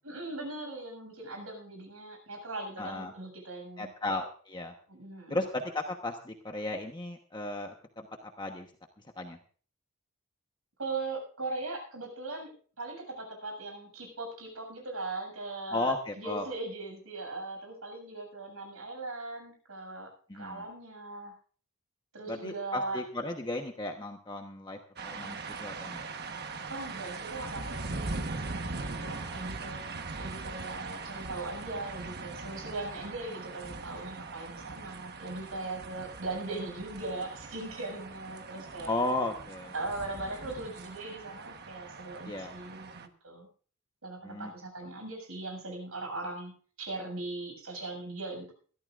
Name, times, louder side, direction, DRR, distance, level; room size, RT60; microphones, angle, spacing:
voice 1, 0.1-3.9 4.9-5.4 10.8-21.3 22.1-23.0 26.7-29.8 30.2-38.9 39.7-43.5 44.0-46.5 46.8-48.5, right 2 dB, 70° right, 2 dB, 7.2 m, -39 dB
voice 2, 2.8-3.1 3.8-4.7 5.3-8.7 9.2-9.4 15.7-16.4 20.3-20.6 22.3-24.8 25.0-26.0 29.1-29.5 38.8-39.7 42.3-42.5 44.2-44.5, left 2 dB, 20° left, 3 dB, 1.1 m, -35 dB
sound 1, 25.0-43.1, right 3 dB, 50° right, 1.2 m, -41 dB
21.5 x 14.5 x 2.5 m, 0.43 s
head